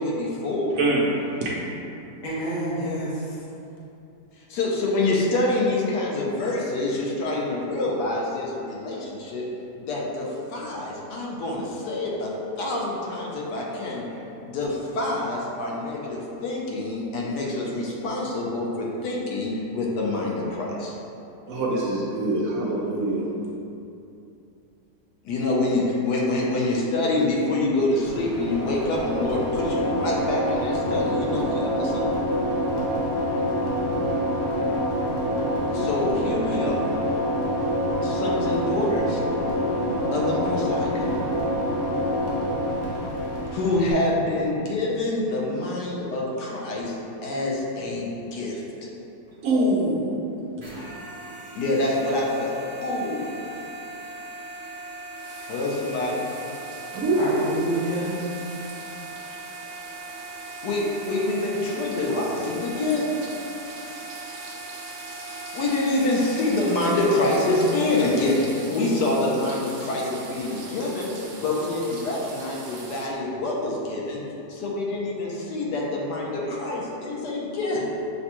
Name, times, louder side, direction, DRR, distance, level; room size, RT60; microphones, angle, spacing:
voice 1, 0.0-0.7 4.5-9.4 9.8-20.9 25.2-32.0 35.7-36.9 38.0-39.2 40.1-41.2 43.5-47.0 47.2-48.9 51.5-53.5 55.5-56.2 60.6-63.3 65.5-71.1 71.4-74.2 74.5-77.8, left 2 dB, 80° left, -3 dB, 1.3 m, -26 dB
voice 2, 0.7-1.5 21.5-23.2 49.4-50.2 56.9-57.4, right 2 dB, 70° right, -4 dB, 0.9 m, -24 dB
voice 3, 2.2-3.4 57.2-58.2, right 1 dB, 45° left, -7 dB, 0.6 m, -28 dB
sound 1, 28.0-43.9, equal, 65° left, 1.2 m, -26 dB
sound 2, 50.6-68.4, right 2 dB, 30° right, 0.5 m, -40 dB
sound 3, 55.1-73.1, right 3 dB, 85° right, 0.5 m, -43 dB
6.6 x 2.2 x 2.9 m, 2.8 s
omnidirectional pair, 1.7 m